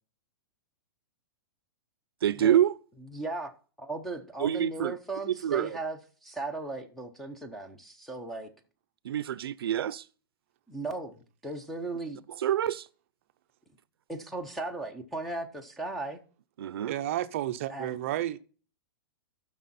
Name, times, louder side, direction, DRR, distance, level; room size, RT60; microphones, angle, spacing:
voice 1, 2.2-2.8 4.4-4.9 5.3-5.8 9.0-10.0 12.4-12.9 16.6-17.0, right 10 dB, 85° right, 0.6 m, -26 dB
voice 2, 3.1-3.5 3.8-8.5 10.7-12.2 14.1-16.2 17.7-18.0, right 2 dB, ahead, 0.7 m, -37 dB
voice 3, 16.8-18.4, right 13 dB, 35° right, 0.6 m, -31 dB
14.5 x 6.2 x 4.2 m
supercardioid pair, 180°, 12 cm